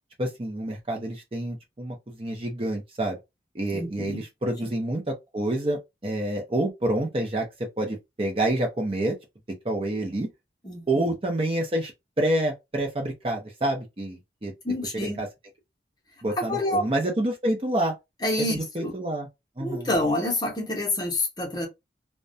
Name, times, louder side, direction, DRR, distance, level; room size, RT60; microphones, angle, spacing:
voice 1, 0.2-3.2 3.5-7.5 7.8-9.2 9.6-10.3 10.9-11.9 12.2-14.5 14.9-15.3 16.2-17.9 18.5-19.3 19.6-19.9, right 1 dB, 30° right, 0.6 m, -28 dB
voice 2, 3.7-4.2 10.6-11.1 14.6-15.2 16.4-16.8 18.2-18.9 19.6-21.7, left 1 dB, 20° left, 0.8 m, -27 dB
2.3 x 2.1 x 2.6 m
head